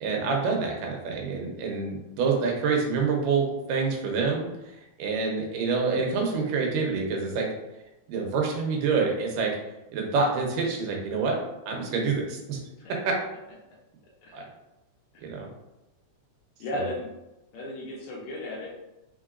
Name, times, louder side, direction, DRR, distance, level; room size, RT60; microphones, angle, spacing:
voice 1, 0.0-7.5 8.1-9.5 9.9-11.4 11.7-12.6 13.0-13.1 14.3-14.4 15.2-15.5 16.7-16.9, right 4 dB, 90° right, 0 dB, 2.5 m, -27 dB
voice 2, 16.6-17.1 17.5-18.7, left 1 dB, 70° left, -3 dB, 2.0 m, -35 dB
5.2 x 3.8 x 2.5 m, 0.95 s
omnidirectional pair, 3.7 m